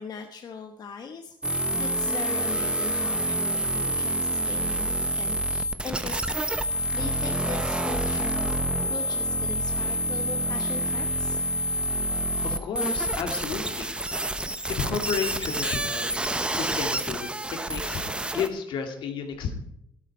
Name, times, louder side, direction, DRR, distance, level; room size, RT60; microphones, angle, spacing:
voice 1, 0.0-11.5 12.7-12.9, left 5 dB, 50° left, 5 dB, 1.1 m, -40 dB
sound 1, 1.4-18.5, right 1 dB, 10° right, 1.0 m, -28 dB
voice 2, 12.4-14.4 14.7-16.2 16.5-19.5, left 6 dB, 75° left, 4 dB, 2.4 m, -32 dB
12.5 x 12.5 x 4.3 m, 0.76 s
cardioid pair, 100°, 9 cm